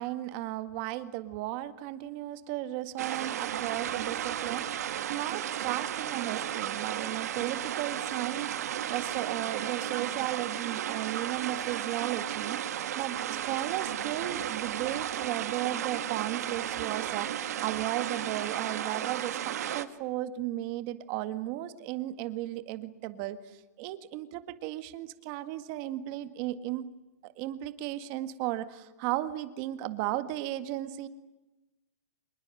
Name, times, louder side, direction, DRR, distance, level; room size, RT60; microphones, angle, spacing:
voice 1, 0.0-26.9 27.2-31.1, right 14 dB, 35° right, 11 dB, 1.9 m, -35 dB
sound 1, 3.0-19.9, right 10 dB, 70° right, 1.9 m, -34 dB
26.5 x 21.5 x 9.2 m, 1.1 s
hypercardioid pair, 160°, 9 cm